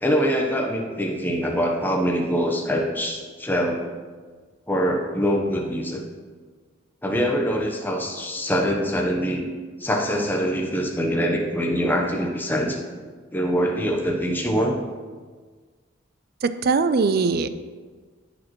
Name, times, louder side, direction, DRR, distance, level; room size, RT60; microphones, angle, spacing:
voice 1, 0.0-3.8 4.7-6.0 7.0-9.4 9.8-12.8 13.3-14.8, equal, 10° left, 1 dB, 0.9 m, -24 dB
voice 2, 16.4-17.5, right 4 dB, 50° right, 12 dB, 0.4 m, -21 dB
13.5 x 5.1 x 3.1 m, 1.5 s
head